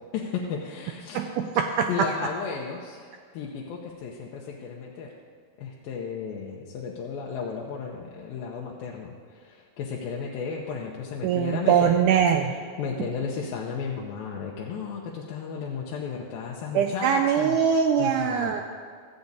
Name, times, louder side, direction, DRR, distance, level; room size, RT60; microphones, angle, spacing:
voice 1, 0.1-1.5 1.9-5.1 5.6-12.0 12.4-17.6 18.0-18.6, left 6 dB, 85° left, -3 dB, 2.6 m, -34 dB
voice 2, 1.1-2.1 11.2-12.5 16.8-18.6, right 7 dB, 85° right, 5 dB, 1.8 m, -22 dB
14.0 x 8.5 x 4.0 m, 2.1 s
omnidirectional pair, 4.1 m